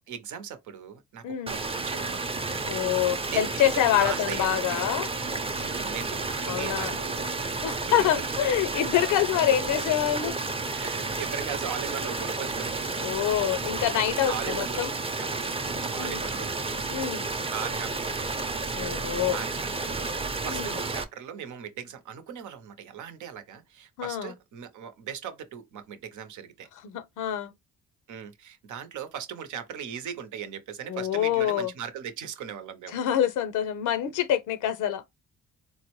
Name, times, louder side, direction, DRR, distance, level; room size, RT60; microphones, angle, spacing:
voice 1, 0.1-2.3 3.1-3.7 4.0-4.9 5.5-8.3 10.7-13.1 14.3-14.8 15.2-15.6 15.9-16.6 17.5-18.4 19.1-20.1 20.4-26.7 28.1-33.0, right 8 dB, 75° right, 0.8 m, -39 dB
voice 2, 1.2-1.6 2.7-5.1 6.5-7.0 7.6-10.4 13.0-14.9 16.0-16.2 16.9-17.3 18.7-19.4 20.5-20.7 24.0-24.3 26.8-27.5 30.9-31.7 32.9-35.2, left 11 dB, 80° left, 0.6 m, -26 dB
sound 1, 1.5-21.0, right 3 dB, 20° right, 0.6 m, -31 dB
3.9 x 2.1 x 3.0 m
cardioid pair, 90°, 30 cm